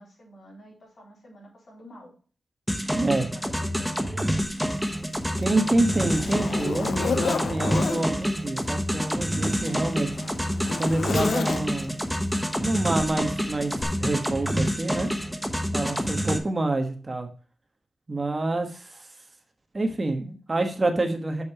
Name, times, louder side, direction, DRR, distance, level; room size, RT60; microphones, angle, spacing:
voice 1, 0.0-2.1 3.0-4.8 9.3-9.8, equal, 60° left, -2 dB, 3.9 m, -47 dB
sound 1, 2.7-16.4, equal, ahead, 1.0 m, -28 dB
voice 2, 2.9-3.3 5.4-10.1 10.8-11.9 12.6-15.1 15.7-17.3 18.1-19.0 19.7-21.4, right 2 dB, 30° right, 5 dB, 1.3 m, -27 dB
Zipper (clothing), 4.4-4.5 5.1-8.1 9.0-12.0 13.0-13.2 13.8-13.9, left 5 dB, 85° left, 0.8 m, -31 dB
6.8 x 6.0 x 4.8 m, 0.40 s
wide cardioid pair, 110°, 0 cm